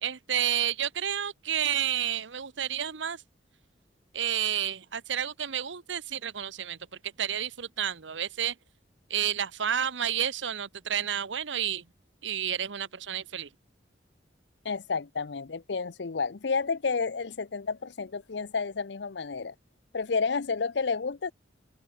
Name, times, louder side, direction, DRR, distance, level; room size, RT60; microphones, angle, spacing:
voice 1, 0.0-3.2 4.1-6.8 7.2-8.5 9.1-11.8 12.2-13.5, right 9 dB, 90° right, 1.0 m, -30 dB
voice 2, 14.6-19.5 19.9-21.3, left 5 dB, 70° left, 0.6 m, -30 dB
head